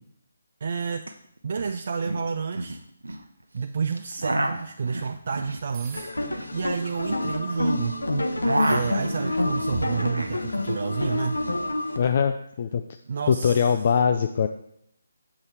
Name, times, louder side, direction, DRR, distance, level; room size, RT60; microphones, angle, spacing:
voice 1, 0.6-1.1 1.4-2.8 3.5-6.1 6.5-8.0 8.6-11.4 13.1-13.6, right 5 dB, 45° right, 7 dB, 0.3 m, -30 dB
sound 1, 1.0-1.1 1.4-1.7 2.0-3.2 3.9-7.9 8.2-10.4 10.7-11.7, right 1 dB, 70° right, 0.8 m, -31 dB
sound 2, 5.7-6.3 7.2-7.5 8.5-9.0 10.1-10.5 12.0-12.2, right 6 dB, 20° right, 0.9 m, -47 dB
sound 3, 5.9-12.0, left 2 dB, 70° left, 0.8 m, -28 dB
voice 2, 12.0-12.8 13.3-14.5, left 7 dB, 40° left, 7 dB, 0.4 m, -22 dB
6.9 x 5.0 x 4.2 m, 0.72 s
figure-of-eight pair, 145°, 0 cm